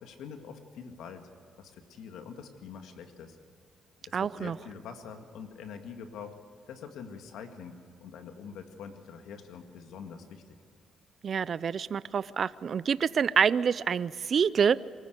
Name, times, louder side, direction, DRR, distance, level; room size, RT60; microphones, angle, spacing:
voice 1, 0.0-1.3 1.6-3.4 4.1-6.3 6.7-10.4, left 6 dB, 80° left, 6 dB, 2.0 m, -45 dB
voice 2, 4.1-4.6 11.2-14.8, right 7 dB, 50° right, 18 dB, 0.5 m, -27 dB
24.0 x 15.0 x 8.2 m, 2.4 s
cardioid pair, 90°, 0 cm